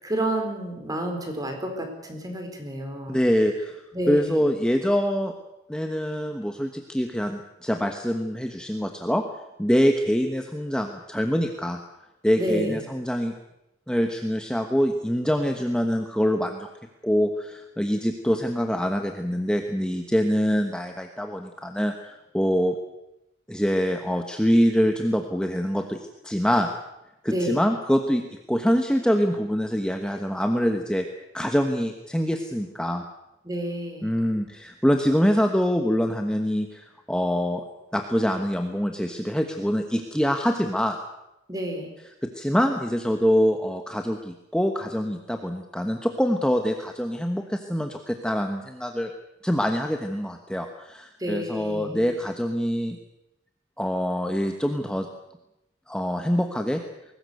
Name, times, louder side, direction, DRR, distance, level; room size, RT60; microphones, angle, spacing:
voice 1, 0.0-3.2 3.9-4.5 12.4-12.9 27.3-27.6 33.4-34.1 41.5-41.9 51.2-52.1, right 1 dB, 20° right, 4 dB, 4.4 m, -30 dB
voice 2, 3.1-5.3 5.7-9.2 9.6-11.8 12.2-13.3 13.9-16.7 17.0-22.8 23.5-26.7 27.2-28.2 28.5-31.1 31.3-33.1 34.0-37.6 37.9-41.0 42.2-49.1 49.4-53.0 53.8-55.1 55.9-56.8, equal, 5° left, 4 dB, 1.2 m, -25 dB
22.0 x 18.5 x 8.0 m, 0.89 s
head